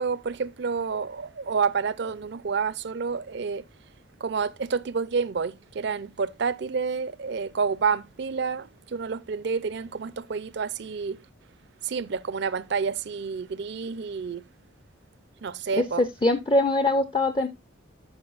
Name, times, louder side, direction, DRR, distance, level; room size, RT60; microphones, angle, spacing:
voice 1, 0.0-3.6 4.2-11.2 11.8-14.4 15.4-16.0, right 5 dB, 55° right, 0.4 m, -29 dB
voice 2, 16.0-17.5, left 2 dB, 25° left, 0.5 m, -22 dB
12.5 x 5.6 x 2.4 m
head